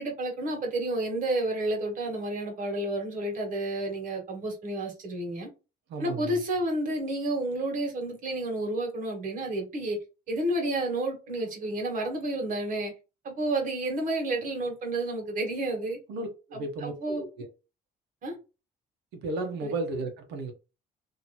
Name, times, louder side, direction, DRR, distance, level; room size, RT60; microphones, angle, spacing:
voice 1, 0.0-5.5 6.0-10.0 10.3-12.9 13.2-16.0 16.5-17.2 18.2-18.3 19.6-19.7, right 1 dB, 50° right, 1.8 m, -30 dB
voice 2, 5.9-6.4 16.1-17.5 19.1-20.5, right 2 dB, 85° right, 1.1 m, -34 dB
3.0 x 2.9 x 4.2 m
cardioid pair, 110°, 17 cm